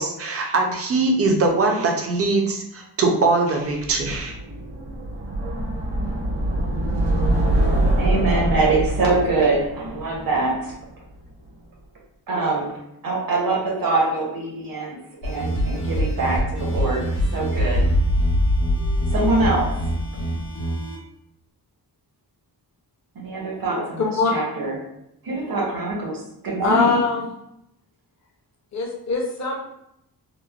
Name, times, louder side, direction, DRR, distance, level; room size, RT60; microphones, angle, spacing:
voice 1, 0.0-4.3, right 3 dB, 35° right, 2 dB, 0.4 m, -21 dB
sound 1, 3.8-10.9, right 1 dB, 90° right, 0.9 m, -24 dB
voice 2, 8.0-10.7 12.3-12.8 13.0-15.0 15.2-17.9 19.1-19.8 23.2-24.8 25.2-27.0, right 3 dB, 60° right, -2 dB, 0.8 m, -24 dB
sound 2, 15.2-21.0, equal, 75° left, 0.8 m, -23 dB
voice 3, 24.0-24.3 26.6-27.3 28.7-29.6, left 4 dB, 45° left, 0 dB, 0.6 m, -22 dB
3.0 x 2.0 x 2.3 m, 0.79 s
wide cardioid pair, 145°, 40 cm